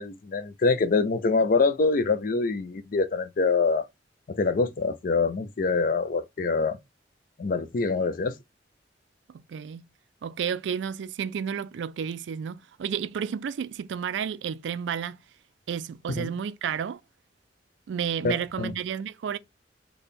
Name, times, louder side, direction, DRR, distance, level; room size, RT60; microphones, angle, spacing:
voice 1, 0.0-3.8 4.3-6.8 7.4-8.3 16.2-16.3 18.2-18.3 18.6-18.7, left 4 dB, 50° left, 0.5 m, -25 dB
voice 2, 9.5-9.8 10.2-15.2 15.7-17.0 17.9-19.4, right 7 dB, 80° right, 0.3 m, -31 dB
3.4 x 2.2 x 4.1 m
head